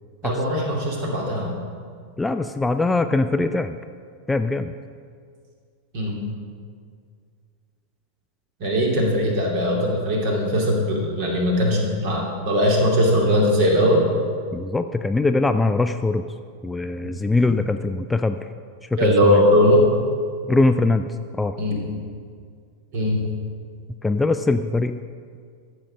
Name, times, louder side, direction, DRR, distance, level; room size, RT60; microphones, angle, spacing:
voice 1, 0.2-1.5 5.9-6.2 8.6-14.0 19.0-19.9 21.6-21.8 22.9-23.2, equal, 50° right, -1 dB, 2.5 m, -20 dB
voice 2, 2.2-3.8 4.3-4.7 14.5-16.2 16.6-18.5 18.8-19.4 20.5-21.1 21.4-21.5 24.0-24.9, left 3 dB, 10° left, 9 dB, 0.3 m, -22 dB
13.5 x 5.7 x 6.2 m, 2.1 s
figure-of-eight pair, 90°, 0 cm